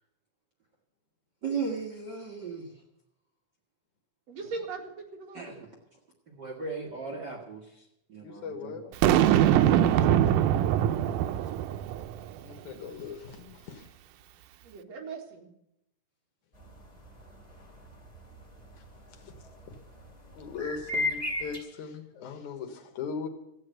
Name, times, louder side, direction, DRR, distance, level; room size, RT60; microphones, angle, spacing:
voice 1, 1.4-2.8 5.3-5.7 6.3-8.9, right 5 dB, 40° right, -1 dB, 1.7 m, -37 dB
voice 2, 4.3-5.5 9.2-10.4 14.6-15.5, right 4 dB, 55° right, 1 dB, 3.0 m, -40 dB
voice 3, 8.2-8.8 11.4-11.5 12.4-13.9 19.1-19.3 19.7-19.8 20.4-23.3, left 5 dB, 70° left, 6 dB, 2.8 m, -39 dB
Boom, 9.0-12.3, right 11 dB, 80° right, 2.2 m, -23 dB
sound 1, 16.6-21.6, left 2 dB, 15° left, 2.5 m, -35 dB
13.5 x 8.7 x 9.1 m, 0.81 s
omnidirectional pair, 3.6 m